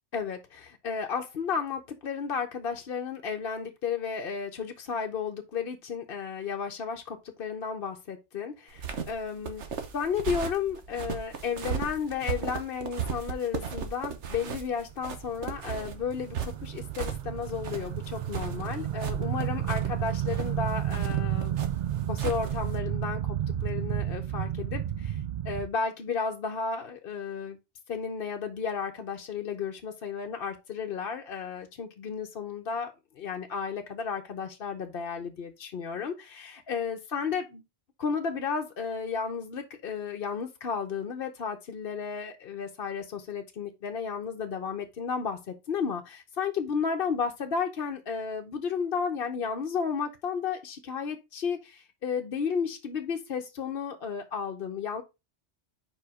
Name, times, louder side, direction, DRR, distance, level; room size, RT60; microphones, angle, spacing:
voice 1, 0.1-9.6 9.9-21.6 22.1-23.4 23.6-27.6 27.9-37.6 38.0-55.0, left 6 dB, 60° left, 0.9 m, -33 dB
sound 1, 8.7-22.8, right 7 dB, 75° right, 1.3 m, -37 dB
sound 2, 14.8-25.7, right 11 dB, 60° right, 0.5 m, -32 dB
4.8 x 4.8 x 4.7 m
omnidirectional pair, 1.2 m